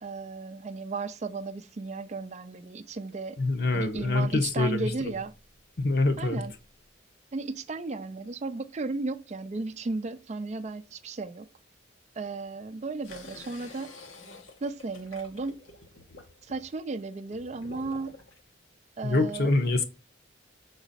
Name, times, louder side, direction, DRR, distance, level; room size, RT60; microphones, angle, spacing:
voice 1, 0.0-3.4 3.7-5.3 6.2-6.5 7.3-11.5 12.2-13.9 14.6-15.6 16.4-18.2 19.0-19.5, right 3 dB, 35° right, 0.4 m, -35 dB
voice 2, 3.4-5.1 5.8-6.4 19.0-19.8, left 2 dB, 55° left, 0.9 m, -25 dB
sound 1, 13.0-18.4, left 3 dB, 90° left, 1.3 m, -49 dB
6.1 x 3.9 x 4.0 m
head